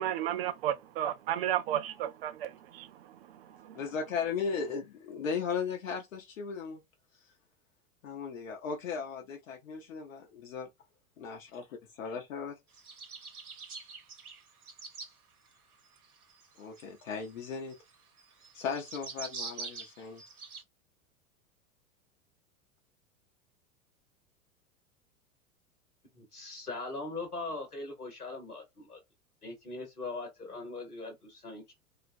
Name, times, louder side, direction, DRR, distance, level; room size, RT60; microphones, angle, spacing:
voice 1, 0.0-3.8, right 11 dB, 45° right, 0.5 m, -33 dB
voice 2, 3.7-6.8 8.0-10.7 11.2-12.6 16.6-17.7 18.5-20.2, left 6 dB, 60° left, 0.8 m, -36 dB
sound 1, 12.7-15.1 15.9-20.6, right 4 dB, 80° right, 0.7 m, -44 dB
voice 3, 26.1-29.0 29.4-31.7, left 3 dB, 85° left, 1.0 m, -40 dB
2.3 x 2.1 x 2.5 m
figure-of-eight pair, 90°, 44 cm